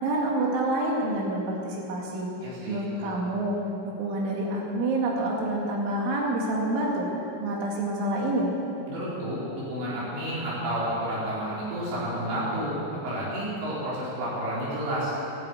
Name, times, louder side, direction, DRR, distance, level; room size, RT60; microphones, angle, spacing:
voice 1, 0.0-2.3 2.7-3.6 3.8-7.1 7.4-8.5, right 1 dB, 90° right, -2 dB, 4.7 m, -27 dB
voice 2, 2.4-3.1 8.9-15.2, right 1 dB, 70° right, -7 dB, 6.4 m, -31 dB
13.0 x 10.5 x 9.0 m, 2.8 s
omnidirectional pair, 5.3 m